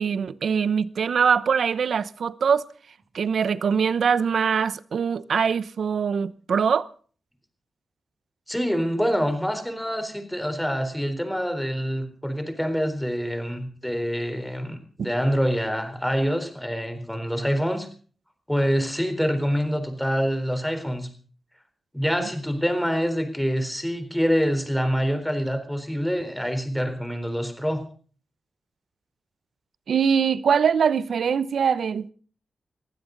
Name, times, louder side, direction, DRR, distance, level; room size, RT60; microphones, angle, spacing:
voice 1, 0.0-2.6 3.1-6.9 15.0-15.1 29.9-32.1, right 6 dB, 75° right, 0.8 m, -23 dB
voice 2, 8.5-17.9 18.5-21.1 21.9-27.8, equal, 5° left, 4.0 m, -26 dB
20.5 x 15.5 x 4.0 m
wide cardioid pair, 100°, 0 cm